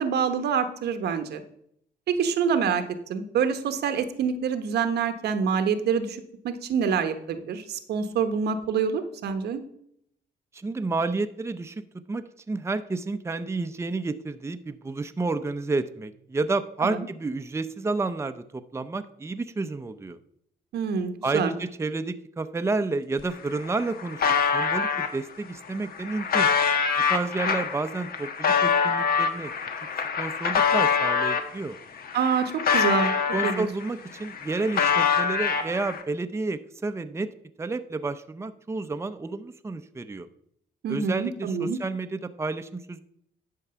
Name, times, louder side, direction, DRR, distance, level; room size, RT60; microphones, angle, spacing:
voice 1, 0.0-1.4 2.1-2.8 3.1-9.6 16.8-17.1 20.7-21.5 32.1-33.1 33.4-33.7 40.8-41.8, right 6 dB, 85° right, 9 dB, 1.0 m, -26 dB
voice 2, 10.5-11.8 12.1-20.2 21.2-24.3 24.5-26.5 27.1-29.5 30.2-31.8 33.3-37.3 37.6-40.3 40.9-43.0, right 3 dB, 15° right, 9 dB, 0.6 m, -30 dB
sound 1, 23.2-23.3 23.5-25.1 25.7-31.5 32.0-33.9 34.2-36.0, left 6 dB, 65° left, 1.2 m, -25 dB
11.0 x 4.6 x 6.9 m, 0.70 s
cardioid pair, 100°, 17 cm